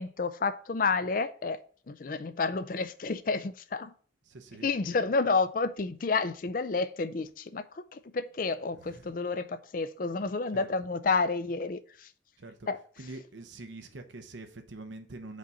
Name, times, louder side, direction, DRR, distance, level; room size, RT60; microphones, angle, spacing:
voice 1, 0.0-1.6 1.9-3.9 4.6-12.1 12.7-12.8, left 4 dB, 50° left, 0.5 m, -30 dB
voice 2, 4.2-4.7 8.7-9.1 10.5-10.7 12.4-15.4, right 2 dB, 85° right, 0.9 m, -45 dB
5.2 x 4.0 x 5.7 m
head